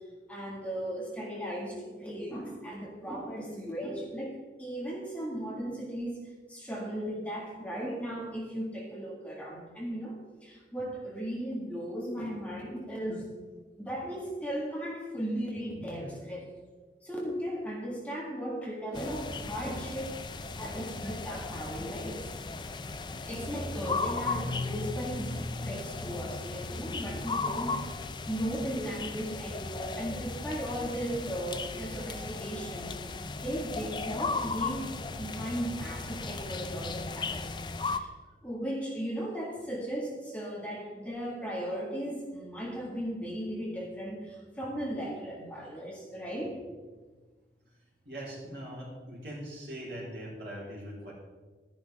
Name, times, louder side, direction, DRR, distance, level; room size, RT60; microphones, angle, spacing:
voice 1, 0.3-6.2 6.5-13.3 13.8-16.5 17.0-20.1 20.6-22.4 23.2-27.9 28.3-34.9 35.2-37.5 37.9-38.1 38.4-46.6, equal, 10° left, -3 dB, 1.9 m, -36 dB
sound 1, 18.9-38.0, left 3 dB, 25° left, 0.4 m, -36 dB
voice 2, 48.0-51.1, equal, 75° right, -6 dB, 4.0 m, -41 dB
12.0 x 10.0 x 3.6 m, 1.4 s
head